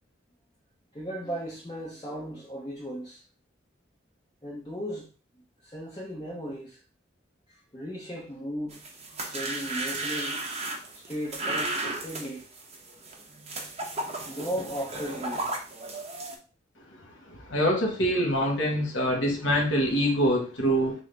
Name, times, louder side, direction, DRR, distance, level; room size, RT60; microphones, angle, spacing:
voice 1, 0.9-3.2 4.4-5.1 5.6-6.8 7.5-8.8 9.3-10.4 10.9-12.5 14.2-15.5, equal, 20° left, 0.7 m, -36 dB
sound 1, 8.7-16.3, right 2 dB, 35° right, 0.7 m, -34 dB
voice 2, 17.5-20.9, equal, 75° left, 1.4 m, -24 dB
6.1 x 2.1 x 3.3 m
head